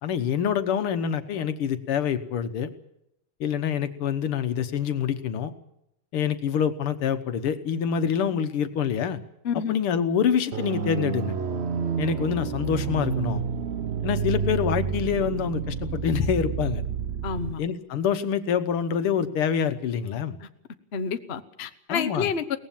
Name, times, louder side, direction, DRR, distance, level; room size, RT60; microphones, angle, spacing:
voice 1, 0.0-2.7 3.4-5.5 6.1-9.2 9.5-11.4 12.0-13.4 14.0-16.8 17.6-20.4 21.9-22.3, left 8 dB, 80° left, 9 dB, 2.1 m, -26 dB
sound 1, 10.5-17.5, right 6 dB, 50° right, 0.8 m, -29 dB
voice 2, 17.2-17.6 20.4-20.5 20.9-22.6, left 6 dB, 40° left, 9 dB, 1.0 m, -29 dB
22.5 x 18.5 x 7.4 m, 0.80 s
omnidirectional pair, 2.4 m